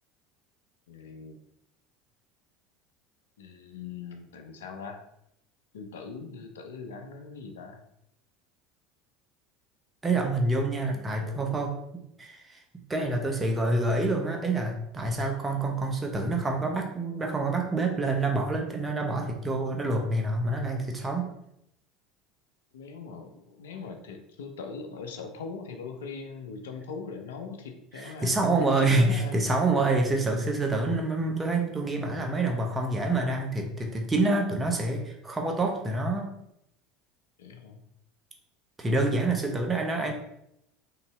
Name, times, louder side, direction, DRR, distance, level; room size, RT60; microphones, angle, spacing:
voice 1, 0.9-1.4 3.4-5.0 5.7-7.8 10.9-11.6 22.7-28.5 28.8-29.5 37.4-37.8, left 4 dB, 85° left, 5 dB, 0.6 m, -40 dB
voice 2, 10.0-12.6 12.9-21.3 27.9-36.3 38.8-40.1, right 2 dB, 20° right, 2 dB, 0.8 m, -27 dB
3.8 x 2.7 x 4.3 m, 0.77 s
hypercardioid pair, 80°, 0 cm